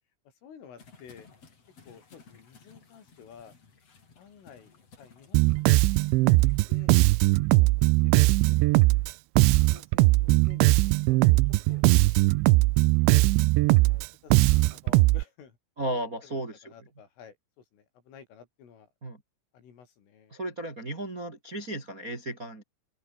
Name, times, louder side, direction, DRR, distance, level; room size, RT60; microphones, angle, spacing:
voice 1, 0.4-1.3 1.9-3.6 4.2-5.7 6.7-7.0 7.5-8.8 9.5-11.4 11.7-11.9 13.0-13.3 13.7-15.6 16.2-18.9 19.5-20.3, left 7 dB, 75° left, 7.0 m, -53 dB
sound 1, 0.8-6.6, left 5 dB, 35° left, 4.6 m, -57 dB
Bass guitar, 5.3-15.2, right 22 dB, 85° right, 2.8 m, -20 dB
voice 2, 15.8-16.7 19.0-19.2 20.3-22.6, right 1 dB, 25° right, 2.2 m, -34 dB
omnidirectional pair, 5.8 m